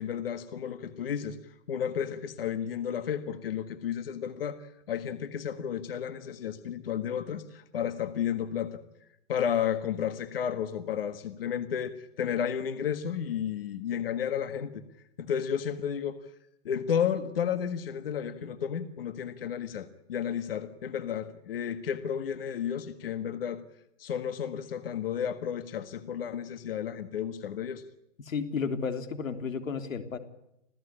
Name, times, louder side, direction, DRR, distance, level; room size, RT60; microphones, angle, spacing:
voice 1, 0.0-1.4 1.7-8.8 9.3-14.8 15.2-16.2 16.7-23.6 24.0-27.8, left 8 dB, 45° left, 11 dB, 1.6 m, -32 dB
voice 2, 28.2-30.2, left 5 dB, 90° left, 9 dB, 3.5 m, -32 dB
26.5 x 16.0 x 9.9 m, 0.83 s
hypercardioid pair, 175°, 39 cm